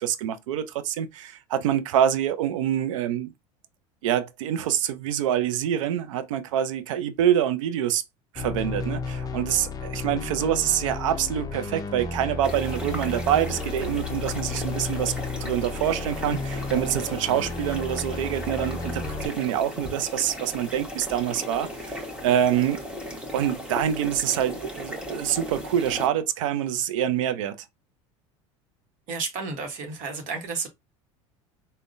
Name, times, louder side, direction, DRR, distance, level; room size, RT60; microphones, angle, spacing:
voice 1, 0.0-3.3 4.0-8.0 8.3-15.1 15.4-22.8 23.3-27.6, right 10 dB, 80° right, 0.5 m, -26 dB
sound 1, 8.3-19.3, left 4 dB, 25° left, 0.5 m, -33 dB
sound 2, 12.4-26.1, equal, 5° right, 1.1 m, -37 dB
voice 2, 29.1-30.7, right 4 dB, 55° right, 1.0 m, -32 dB
3.6 x 2.2 x 2.5 m
hypercardioid pair, 90°, 16 cm